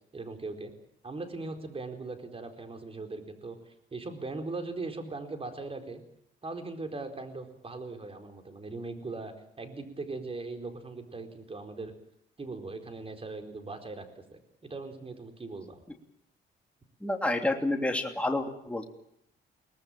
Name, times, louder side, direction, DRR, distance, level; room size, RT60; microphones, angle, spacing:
voice 1, 0.1-0.7 1.0-6.0 6.4-11.9 12.4-15.8, right 3 dB, 30° right, 5 dB, 4.4 m, -40 dB
voice 2, 17.0-18.8, left 2 dB, 5° left, 3 dB, 3.0 m, -29 dB
23.0 x 19.0 x 8.9 m, 0.75 s
cardioid pair, 90°, 20 cm